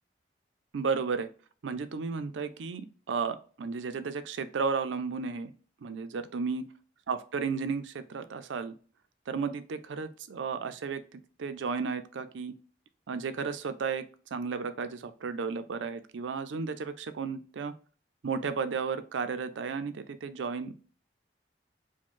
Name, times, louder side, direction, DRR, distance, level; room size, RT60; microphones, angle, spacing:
voice 1, 0.7-1.3 1.6-5.5 5.8-6.6 7.1-8.7 9.3-12.5 13.1-14.0 14.3-17.7 18.2-20.7, right 5 dB, 85° right, 11 dB, 0.4 m, -33 dB
4.9 x 2.1 x 3.6 m, 0.41 s
head